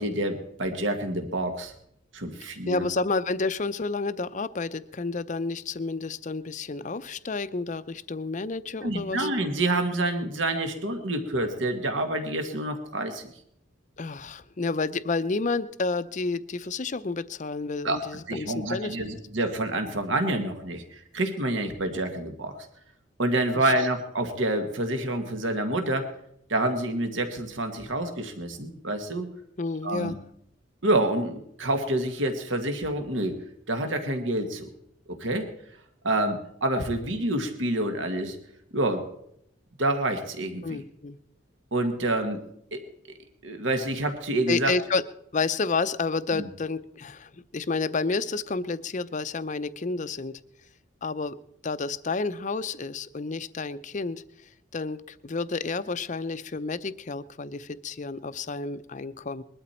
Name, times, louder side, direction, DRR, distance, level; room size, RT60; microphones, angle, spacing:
voice 1, 0.0-1.7 2.1-2.9 8.8-13.3 17.8-18.0 18.3-22.6 23.2-26.1 26.5-29.3 29.8-30.2 30.8-33.4 33.7-34.7 35.1-35.5 36.0-38.4 38.7-39.0 39.8-40.8 41.7-42.4 42.7-42.8 43.4-44.7 46.3-46.5, right 1 dB, 70° right, 6 dB, 1.8 m, -27 dB
voice 2, 2.7-9.3 14.0-19.0 23.5-23.7 29.6-30.2 40.6-41.2 44.5-45.0 45.3-50.3 51.0-51.3 51.6-54.2 54.7-59.4, left 3 dB, 40° left, 13 dB, 0.6 m, -30 dB
21.0 x 12.5 x 4.4 m, 0.74 s
head